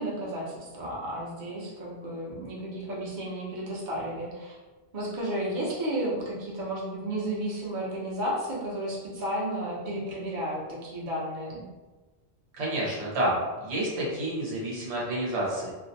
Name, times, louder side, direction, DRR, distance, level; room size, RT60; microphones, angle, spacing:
voice 1, 0.0-4.6 4.9-11.6, right 1 dB, 50° right, -5 dB, 0.7 m, -33 dB
voice 2, 12.5-15.7, right 1 dB, 90° right, -5 dB, 1.1 m, -29 dB
2.5 x 2.1 x 2.6 m, 1.2 s
omnidirectional pair, 1.1 m